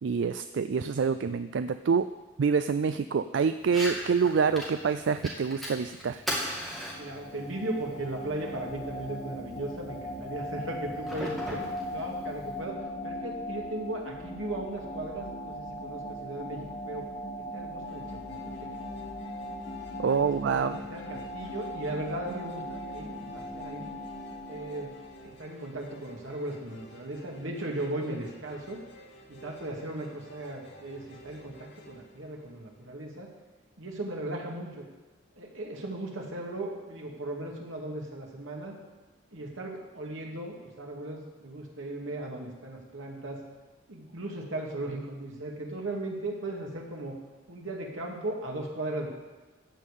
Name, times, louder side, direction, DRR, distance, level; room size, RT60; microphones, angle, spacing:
voice 1, 0.0-2.1 2.4-6.2 20.0-20.8, right 5 dB, 70° right, 11 dB, 0.4 m, -26 dB
Fire, 3.6-12.6, equal, ahead, 2.3 m, -40 dB
sound 1, 6.5-25.4, left 1 dB, 30° left, 1.1 m, -39 dB
voice 2, 7.0-17.1 17.4-18.7 20.0-23.9 24.5-24.9 25.2-28.8 29.3-33.3 33.8-34.9 35.4-38.7 39.3-43.4 43.9-47.1 47.5-49.1, right 1 dB, 90° right, -1 dB, 2.5 m, -37 dB
sound 2, 17.8-33.1, right 1 dB, 60° left, 2.2 m, -52 dB
14.5 x 5.5 x 8.4 m, 1.2 s
head